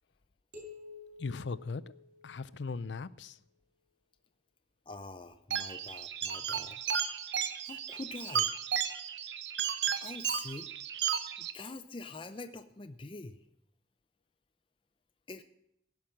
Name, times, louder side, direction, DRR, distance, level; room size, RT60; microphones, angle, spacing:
sound 1, 0.5-2.9, left 4 dB, 50° right, 4.6 m, -51 dB
voice 1, 1.2-1.8 2.2-3.4, left 4 dB, 80° left, 0.5 m, -38 dB
voice 2, 4.9-6.8 7.6-8.5 10.0-10.7 11.4-13.4 15.3-15.4, left 3 dB, 30° left, 0.5 m, -45 dB
sound 2, 5.5-11.5, right 7 dB, 80° right, 0.9 m, -34 dB
16.5 x 6.1 x 8.6 m
head